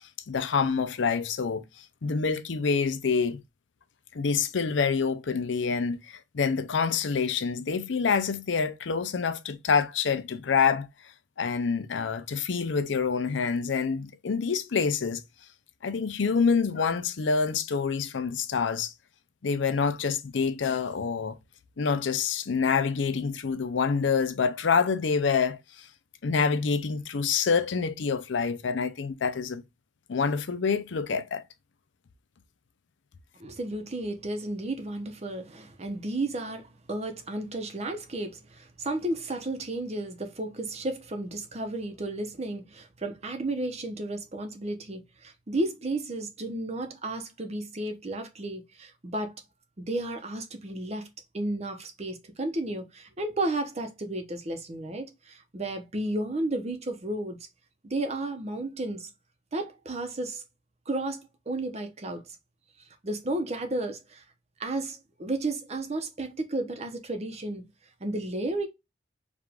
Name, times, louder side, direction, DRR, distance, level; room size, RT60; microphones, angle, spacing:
voice 1, 0.3-1.6 2.0-3.4 4.1-10.9 11.4-15.2 15.8-18.9 19.4-21.4 21.8-25.9 26.2-29.6 30.1-31.4, left 5 dB, 80° left, 0.5 m, -27 dB
voice 2, 33.4-49.3 49.8-51.1 51.3-57.4 57.8-59.1 59.5-60.4 60.9-62.2 63.0-64.2 64.6-67.7 68.0-68.7, right 2 dB, 35° right, 0.8 m, -33 dB
4.9 x 2.5 x 3.5 m
head